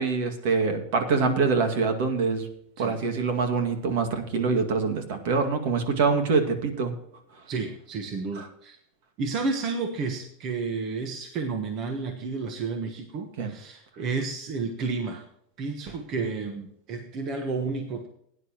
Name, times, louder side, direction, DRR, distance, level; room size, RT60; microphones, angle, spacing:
voice 1, 0.0-2.5 2.8-6.9 8.3-8.5 13.4-13.5, right 4 dB, 55° right, 5 dB, 2.1 m, -25 dB
voice 2, 7.5-8.8 9.2-15.2 15.6-18.1, right 4 dB, 30° right, 5 dB, 1.1 m, -31 dB
18.0 x 9.9 x 3.0 m, 0.71 s
supercardioid pair, 175°, 0 cm